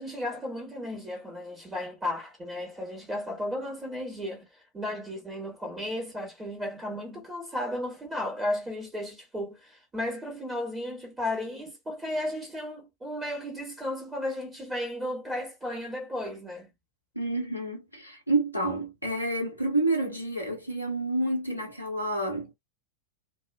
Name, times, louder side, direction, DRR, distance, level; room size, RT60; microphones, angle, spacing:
voice 1, 0.0-4.5 4.7-16.7, left 1 dB, 15° right, 1.2 m, -34 dB
voice 2, 17.1-22.5, right 2 dB, 90° right, 1.0 m, -29 dB
2.4 x 2.3 x 2.4 m
figure-of-eight pair, 90°, 0 cm